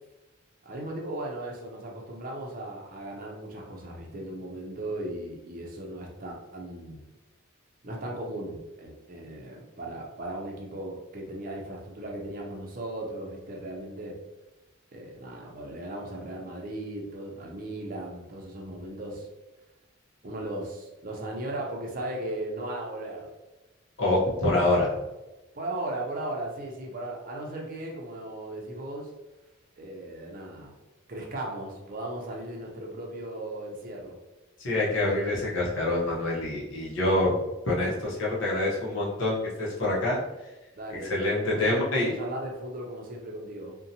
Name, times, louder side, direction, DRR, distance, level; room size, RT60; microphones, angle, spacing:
voice 1, 0.6-7.0 7.8-14.1 14.9-19.3 20.2-23.3 25.5-29.1 29.8-30.7 31.1-34.2 40.8-43.8, right 1 dB, 45° right, 0 dB, 0.5 m, -37 dB
voice 2, 24.0-24.9 34.6-37.3 37.7-40.2 41.1-42.1, left 2 dB, 65° left, -4 dB, 0.8 m, -26 dB
2.7 x 2.1 x 2.7 m, 1.1 s
head